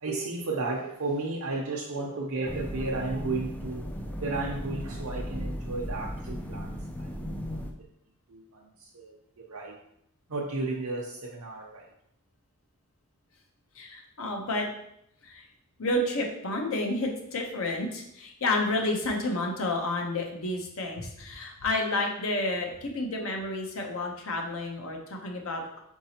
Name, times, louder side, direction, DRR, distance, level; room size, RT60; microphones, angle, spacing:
voice 1, 0.0-7.7 8.3-9.7 10.3-11.9, right 3 dB, 90° right, -3 dB, 0.7 m, -34 dB
sound 1, 2.4-7.7, equal, 5° left, 0.4 m, -36 dB
voice 2, 13.8-14.7 15.2-15.4 15.8-25.8, left 2 dB, 70° left, 1 dB, 0.8 m, -30 dB
4.6 x 3.9 x 2.9 m, 0.76 s
head